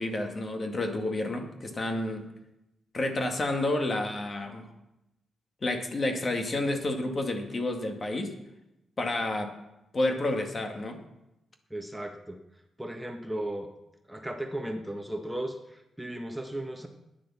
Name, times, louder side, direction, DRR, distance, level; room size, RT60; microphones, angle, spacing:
voice 1, 0.0-2.3 2.9-4.6 5.6-8.3 9.0-9.5 9.9-11.0, left 2 dB, 40° left, 4 dB, 2.0 m, -30 dB
voice 2, 11.7-12.4 12.8-13.7 14.1-16.9, right 1 dB, 5° right, 4 dB, 1.3 m, -36 dB
10.0 x 10.0 x 7.2 m, 0.91 s
cardioid pair, 65°, 0 cm